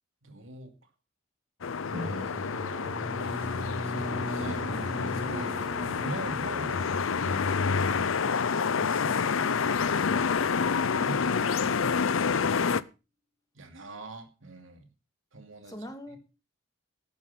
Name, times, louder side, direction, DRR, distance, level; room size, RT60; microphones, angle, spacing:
voice 1, 0.2-0.7 1.9-3.2 3.8-5.6 6.0-7.8 8.8-9.5 10.8-12.1 13.5-14.9 15.3-15.7, right 2 dB, 75° right, 6 dB, 2.7 m, -43 dB
sound 1, 1.6-12.8, left 5 dB, 80° left, 0.6 m, -28 dB
Drum, 1.9-11.2, equal, 15° right, 5.3 m, -40 dB
sound 2, 3.2-7.6, right 2 dB, 60° right, 3.5 m, -53 dB
voice 2, 15.7-16.2, equal, 20° left, 5 dB, 2.4 m, -43 dB
12.0 x 9.6 x 5.7 m, 0.32 s
head